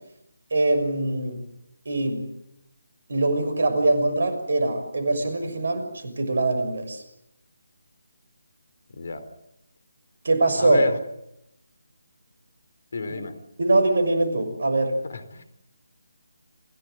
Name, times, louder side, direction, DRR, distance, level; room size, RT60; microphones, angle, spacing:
voice 1, 0.5-1.4 1.8-2.3 3.1-7.0 10.2-10.8 13.1-13.2 13.6-15.0, right 2 dB, 55° right, 8 dB, 6.2 m, -23 dB
voice 2, 8.9-9.2 10.6-10.9 12.9-13.3 15.1-15.4, left 3 dB, 55° left, 11 dB, 3.8 m, -29 dB
28.0 x 16.5 x 9.0 m, 0.83 s
figure-of-eight pair, 150°, 0 cm